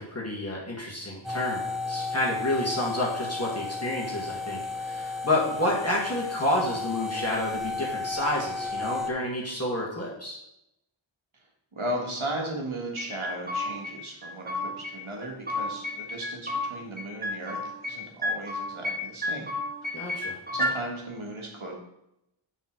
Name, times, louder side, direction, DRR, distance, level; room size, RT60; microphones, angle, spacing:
voice 1, 0.0-10.4 19.9-20.4, left 1 dB, 30° left, -4 dB, 1.7 m, -29 dB
sound 1, 1.2-9.1, left 3 dB, ahead, 0.8 m, -33 dB
voice 2, 11.7-19.5 19.8-20.0 20.5-21.8, right 1 dB, 75° right, 0 dB, 1.8 m, -36 dB
sound 2, 13.0-13.9 14.2-14.9 15.2-16.7 17.0-18.0 18.2-19.0 19.2-20.7, left 1 dB, 20° right, 1.4 m, -31 dB
7.0 x 4.2 x 6.0 m, 0.83 s
wide cardioid pair, 50°, 49 cm